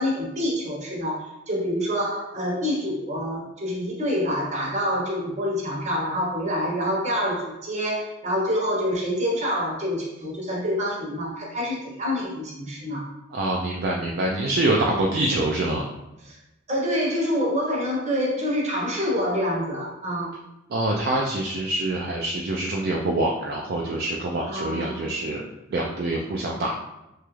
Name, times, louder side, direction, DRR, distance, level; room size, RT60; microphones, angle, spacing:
voice 1, 0.0-13.1 14.9-15.2 16.3-16.4 16.7-20.3 24.5-25.1, equal, 35° right, -3 dB, 0.8 m, -27 dB
voice 2, 13.3-15.9 20.7-25.4 25.7-26.7, right 2 dB, 50° right, -1 dB, 0.3 m, -25 dB
3.0 x 2.4 x 3.0 m, 0.94 s
head